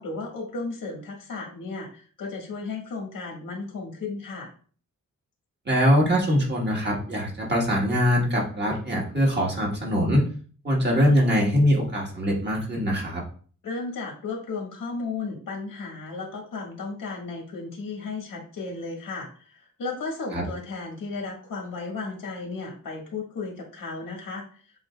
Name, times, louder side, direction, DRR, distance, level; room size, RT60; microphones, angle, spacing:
voice 1, 0.0-4.5 13.6-24.4, left 3 dB, 80° left, -1 dB, 1.7 m, -34 dB
voice 2, 5.7-10.2 10.6-13.2 20.3-20.4, equal, 30° right, -3 dB, 1.6 m, -22 dB
7.8 x 2.7 x 2.3 m, 0.42 s
wide cardioid pair, 140°, 33 cm